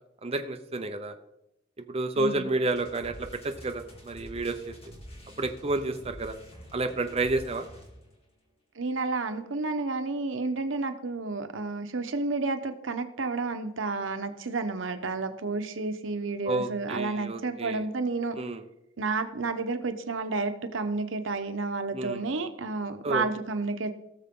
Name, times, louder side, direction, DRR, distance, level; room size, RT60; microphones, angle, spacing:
voice 1, 0.2-1.2 1.9-4.7 5.4-6.4 6.7-7.6 16.4-17.9 18.4-18.6 21.9-22.3 23.0-23.2, right 2 dB, 30° right, 5 dB, 0.7 m, -30 dB
voice 2, 2.2-2.5 8.8-18.4 19.0-23.9, right 3 dB, 85° right, 8 dB, 0.9 m, -31 dB
sound 1, 2.6-8.2, equal, 30° left, 2.3 m, -47 dB
17.5 x 6.8 x 3.7 m, 0.86 s
head